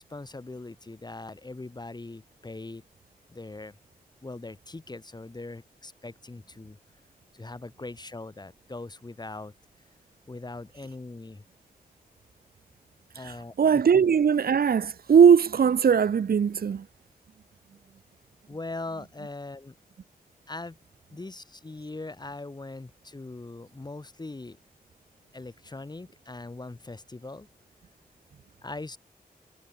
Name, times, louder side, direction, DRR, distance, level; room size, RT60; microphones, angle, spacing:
voice 1, 0.0-2.8 3.3-3.8 4.2-6.8 7.3-9.5 10.3-11.4 13.1-13.8 18.5-19.7 20.5-20.8 21.1-24.6 25.3-27.5 28.6-29.0, left 2 dB, 25° left, 2.2 m, -41 dB
voice 2, 13.2-16.8, right 7 dB, 80° right, 0.8 m, -20 dB
wide cardioid pair, 110°, 15 cm